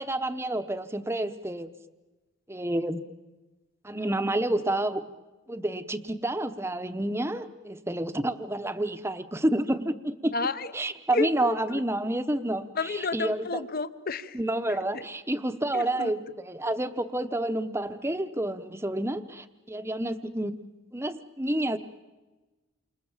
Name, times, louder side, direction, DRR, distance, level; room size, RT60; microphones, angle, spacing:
voice 1, 0.0-1.7 2.5-3.0 3.8-5.1 5.5-10.3 10.7-13.6 14.3-20.6 20.9-21.8, right 1 dB, 10° right, 10 dB, 0.8 m, -29 dB
voice 2, 10.3-10.7 11.1-11.8 12.8-14.4 14.7-15.0 15.7-16.1, left 3 dB, 45° left, 14 dB, 0.9 m, -31 dB
29.0 x 27.0 x 7.3 m, 1.2 s
head